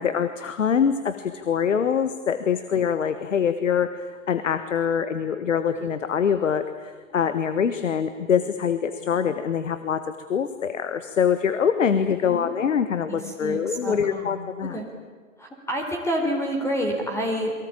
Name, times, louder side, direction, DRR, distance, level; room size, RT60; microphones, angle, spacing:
voice 1, 0.0-10.0 10.3-14.8, left 7 dB, 65° left, 11 dB, 1.6 m, -24 dB
voice 2, 13.1-14.9 15.4-17.5, equal, 5° left, 2 dB, 3.9 m, -29 dB
28.5 x 23.5 x 8.8 m, 1.5 s
figure-of-eight pair, 110°, 41 cm